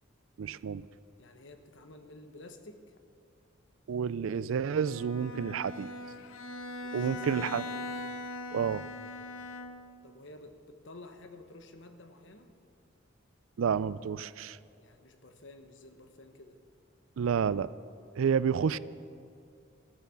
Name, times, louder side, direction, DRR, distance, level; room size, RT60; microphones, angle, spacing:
voice 1, 0.4-0.8 3.9-5.9 6.9-7.6 8.5-8.9 13.6-14.6 17.2-17.7 18.2-18.8, right 7 dB, 80° right, 18 dB, 0.4 m, -30 dB
voice 2, 1.2-2.9 6.8-7.6 10.0-12.5 14.8-16.6, left 2 dB, 65° left, 7 dB, 1.1 m, -51 dB
Bowed string instrument, 4.8-10.1, left 2 dB, 85° left, 0.9 m, -40 dB
14.0 x 9.9 x 7.0 m, 2.4 s
head